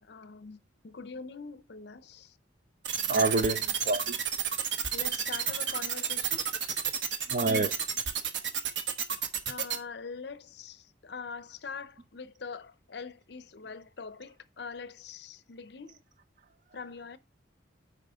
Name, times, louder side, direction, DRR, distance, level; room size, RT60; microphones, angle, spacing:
voice 1, 0.0-2.4 4.9-6.4 9.5-16.0 16.7-17.2, left 5 dB, 60° left, 0.6 m, -43 dB
sound 1, 2.8-9.8, right 8 dB, 70° right, 1.2 m, -30 dB
voice 2, 3.1-4.2 7.3-7.7, right 3 dB, 40° right, 0.7 m, -27 dB
9.2 x 5.0 x 3.5 m
head